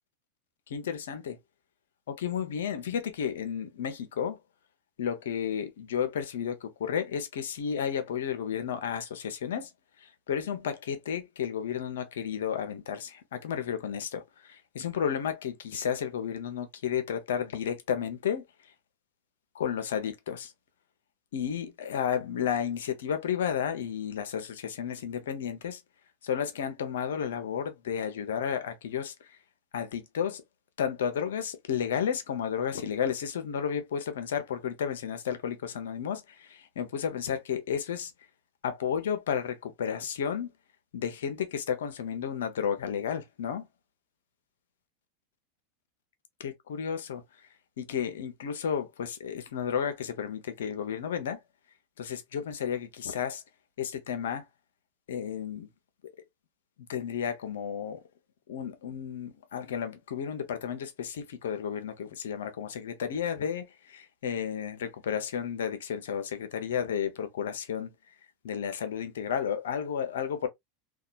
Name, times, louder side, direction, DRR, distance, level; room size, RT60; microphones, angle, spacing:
voice 1, 0.7-1.4 2.1-4.4 5.0-9.7 10.0-18.7 19.5-20.5 21.3-25.8 26.2-29.4 29.7-30.4 30.8-38.1 38.6-40.5 40.9-43.7 46.4-47.5 47.8-51.4 52.0-53.4 53.8-54.4 55.1-55.7 56.9-58.0 58.5-67.9 68.4-70.5, left 8 dB, 85° left, 0.6 m, -32 dB
2.7 x 2.3 x 2.3 m
hypercardioid pair, 110°, 0 cm